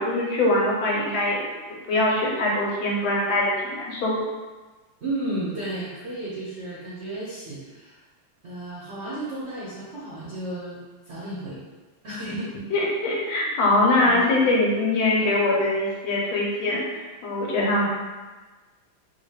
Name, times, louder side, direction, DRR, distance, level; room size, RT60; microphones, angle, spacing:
voice 1, 0.0-4.2 12.2-12.3 12.7-17.9, left 2 dB, 85° left, -3 dB, 1.6 m, -23 dB
voice 2, 5.0-8.0 8.4-10.8 11.1-11.6 12.0-12.5 14.0-14.2, right 1 dB, 60° right, -8 dB, 0.7 m, -33 dB
3.9 x 2.3 x 3.2 m, 1.3 s
omnidirectional pair, 2.2 m